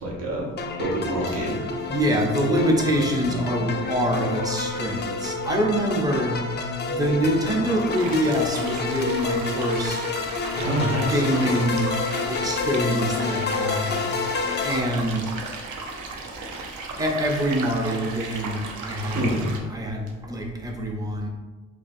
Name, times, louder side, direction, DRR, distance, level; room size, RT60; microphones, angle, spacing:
voice 1, 0.0-0.5 0.8-1.6 10.6-11.2 19.1-19.5, right 1 dB, 55° right, -3 dB, 0.9 m, -26 dB
sound 1, 0.6-14.8, left 4 dB, 35° left, 0.4 m, -29 dB
voice 2, 1.9-6.4 6.9-10.0 10.5-10.7 11.1-11.9 12.3-14.0 14.6-15.3 17.0-21.3, equal, 10° right, 1 dB, 0.6 m, -25 dB
sound 2, 7.9-19.6, right 3 dB, 75° right, 0.6 m, -36 dB
4.1 x 2.6 x 2.6 m, 1.3 s
cardioid pair, 90°, 30 cm